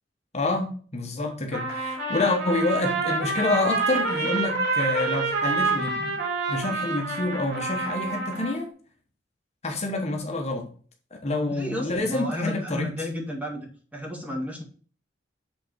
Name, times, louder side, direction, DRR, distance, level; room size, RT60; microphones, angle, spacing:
voice 1, 0.3-6.2 6.5-8.7 9.6-10.7 11.2-12.9, left 2 dB, 40° left, 1.2 m, -27 dB
Trumpet, 1.5-8.6, right 3 dB, 65° right, 3.4 m, -28 dB
voice 2, 11.5-13.7 13.9-14.6, left 1 dB, 10° right, 1.7 m, -32 dB
7.6 x 3.9 x 4.6 m
head